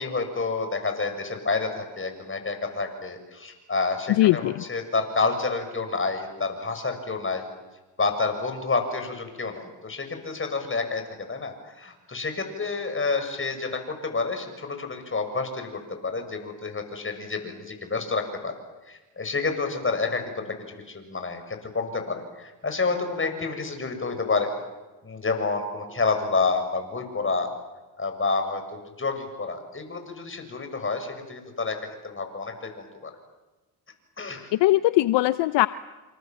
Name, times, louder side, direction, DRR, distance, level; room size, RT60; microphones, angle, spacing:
voice 1, 0.0-7.5 8.0-18.5 18.9-24.5 25.0-27.5 28.0-33.1 34.2-34.5, left 4 dB, 25° left, 6 dB, 7.1 m, -29 dB
voice 2, 4.2-4.6 34.5-35.7, left 17 dB, 65° left, 15 dB, 0.9 m, -20 dB
27.5 x 27.5 x 7.7 m, 1.1 s
supercardioid pair, 70°, 47 cm